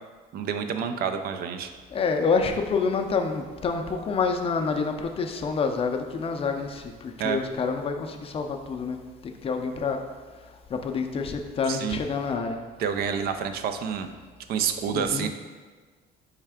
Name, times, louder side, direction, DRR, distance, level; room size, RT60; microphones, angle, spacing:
voice 1, 0.3-1.7 7.2-7.4 11.7-12.0 12.8-14.1 14.5-15.3, right 7 dB, 65° right, 8 dB, 0.4 m, -28 dB
voice 2, 1.9-9.0 9.2-10.0 10.7-12.6 14.9-15.3, left 5 dB, 35° left, 5 dB, 0.4 m, -27 dB
4.4 x 3.3 x 3.5 m, 1.4 s
cardioid pair, 110°, 17 cm